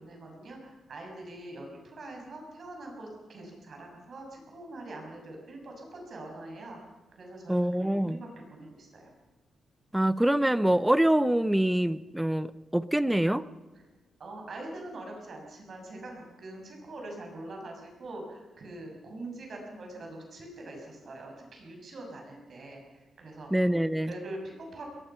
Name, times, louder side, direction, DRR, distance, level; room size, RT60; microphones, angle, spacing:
voice 1, 0.0-6.8 7.1-9.1 14.2-23.5 24.1-24.9, right 2 dB, 45° right, 1 dB, 6.9 m, -43 dB
voice 2, 7.5-8.2 9.9-13.4 23.5-24.1, right 1 dB, 5° right, 16 dB, 0.6 m, -25 dB
21.5 x 20.5 x 5.7 m, 1.2 s
wide cardioid pair, 145°, 0 cm